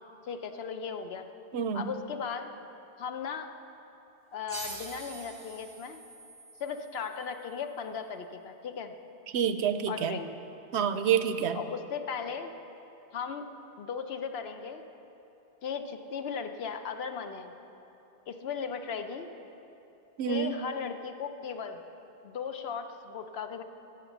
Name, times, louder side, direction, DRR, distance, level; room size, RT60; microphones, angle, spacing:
voice 1, 0.2-1.3 1.7-2.5 3.0-3.5 4.3-6.0 6.6-8.9 9.9-10.3 11.5-12.5 13.1-13.5 13.8-14.8 15.6-17.5 18.3-19.3 20.3-21.8 22.2-23.6, left 6 dB, 70° left, 7 dB, 0.9 m, -37 dB
voice 2, 1.5-1.8 9.3-10.2 10.7-11.6 20.2-20.5, right 8 dB, 80° right, 10 dB, 0.9 m, -27 dB
sound 1, 4.5-7.7, right 2 dB, 25° right, 0.7 m, -45 dB
13.5 x 6.0 x 7.1 m, 3.0 s
omnidirectional pair, 1.1 m